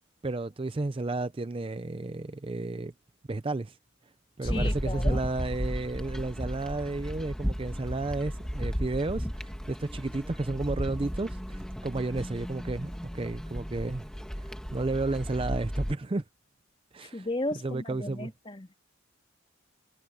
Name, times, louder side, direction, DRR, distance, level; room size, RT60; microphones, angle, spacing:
voice 1, 0.2-2.9 3.3-3.8 4.4-14.1 14.4-16.2 16.9-17.3 17.6-18.3, right 2 dB, 25° right, 0.5 m, -32 dB
voice 2, 4.4-5.2 17.0-18.8, left 1 dB, 25° left, 2.6 m, -35 dB
sound 1, 4.4-15.9, equal, 5° left, 1.5 m, -34 dB
head